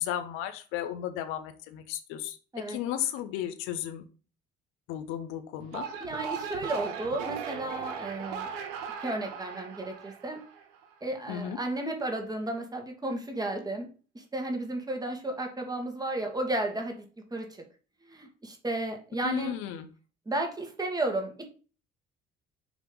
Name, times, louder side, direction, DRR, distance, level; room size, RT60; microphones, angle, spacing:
voice 1, 0.0-2.4 2.7-4.0 4.9-5.9 11.3-11.6 19.2-19.9, left 11 dB, 80° left, 8 dB, 0.9 m, -34 dB
sound 1, 5.6-10.9, right 7 dB, 85° right, 0.9 m, -38 dB
voice 2, 6.0-8.5 9.0-10.4 11.0-13.9 14.1-17.0 17.3-17.6 18.1-19.5 20.3-21.5, right 2 dB, 20° right, 3 dB, 2.0 m, -33 dB
6.1 x 3.3 x 5.4 m, 0.36 s
hypercardioid pair, 60°, 21 cm